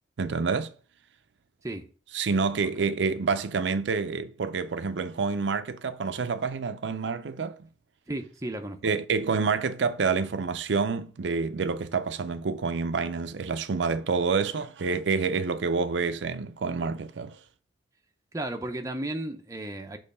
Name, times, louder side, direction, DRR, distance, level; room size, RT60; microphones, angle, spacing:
voice 1, 0.2-0.7 2.1-7.6 8.8-17.4, right 4 dB, 85° right, 0.5 m, -28 dB
voice 2, 8.1-8.8 18.3-20.0, right 1 dB, 20° right, 0.7 m, -34 dB
6.5 x 3.1 x 5.3 m
head